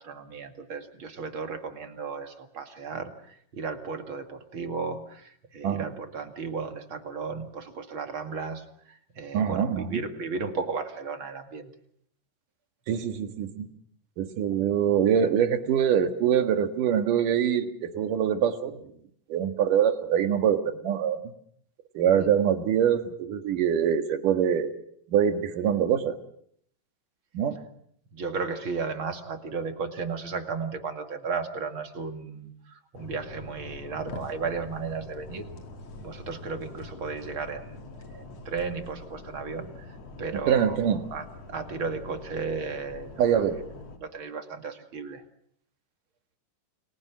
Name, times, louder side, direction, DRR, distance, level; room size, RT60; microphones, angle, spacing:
voice 1, 0.0-11.7 22.2-22.3 28.1-35.5 36.0-40.8 41.1-43.4 44.0-45.2, right 4 dB, 40° right, 6 dB, 2.6 m, -35 dB
voice 2, 9.3-10.0 12.9-13.7 14.2-18.8 19.3-21.2 21.9-24.7 25.1-26.1 27.3-27.6 40.5-41.0 43.2-43.6, right 8 dB, 75° right, 8 dB, 3.2 m, -24 dB
sound 1, 32.9-44.0, left 2 dB, 50° left, 3.4 m, -44 dB
30.0 x 22.0 x 6.1 m, 0.67 s
omnidirectional pair, 3.8 m